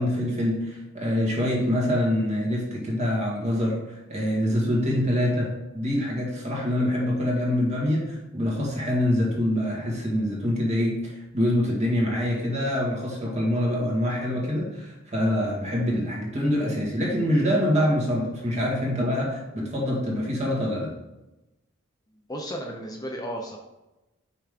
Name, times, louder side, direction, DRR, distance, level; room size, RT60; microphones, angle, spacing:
voice 1, 0.0-20.9, left 1 dB, 35° right, -2 dB, 1.7 m, -25 dB
voice 2, 22.3-23.6, equal, 20° left, 0 dB, 0.6 m, -33 dB
5.8 x 5.1 x 3.5 m, 0.99 s
head